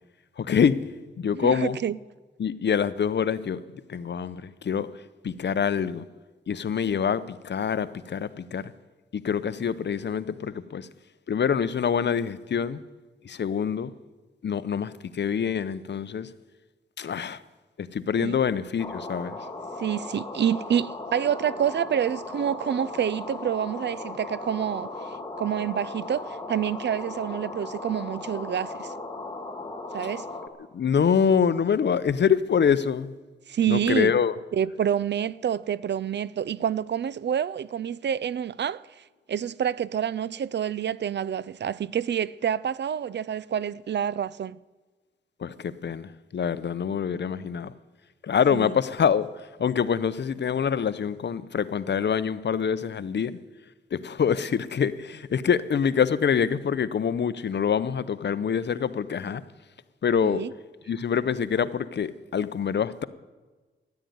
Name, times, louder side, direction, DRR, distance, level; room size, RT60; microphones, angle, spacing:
voice 1, 0.4-0.8 1.2-1.8 2.4-3.6 3.9-4.9 5.2-6.0 6.5-8.6 9.1-10.9 11.3-12.8 13.2-13.9 14.4-16.3 17.0-17.4 17.8-19.4 30.7-33.1 33.7-34.3 45.4-47.7 48.2-53.4 53.9-59.4 60.0-60.4 60.9-63.0, left 7 dB, 60° left, 0.7 m, -25 dB
voice 2, 1.3-2.0 18.2-18.4 19.8-28.9 29.9-30.3 33.5-34.1 34.5-39.0 39.3-44.6 48.5-48.7 60.2-60.5, right 9 dB, 60° right, 0.4 m, -28 dB
sound 1, 18.8-30.5, left 2 dB, 20° left, 1.8 m, -37 dB
13.0 x 10.5 x 9.4 m
wide cardioid pair, 120°, 20 cm